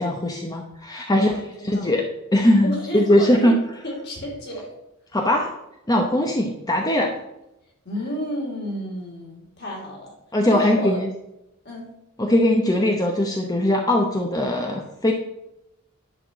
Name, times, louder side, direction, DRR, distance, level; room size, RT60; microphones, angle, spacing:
voice 1, 0.0-1.4 1.6-2.0 2.3-3.6 5.1-5.5 5.9-7.1 10.3-11.1 12.2-15.1, left 1 dB, 15° left, 1 dB, 0.8 m, -20 dB
voice 2, 1.1-1.9 2.6-3.5 3.8-4.7 7.8-10.1 10.4-11.0 11.6-11.9, equal, 50° left, -1 dB, 3.4 m, -31 dB
11.0 x 4.8 x 7.4 m, 0.89 s
head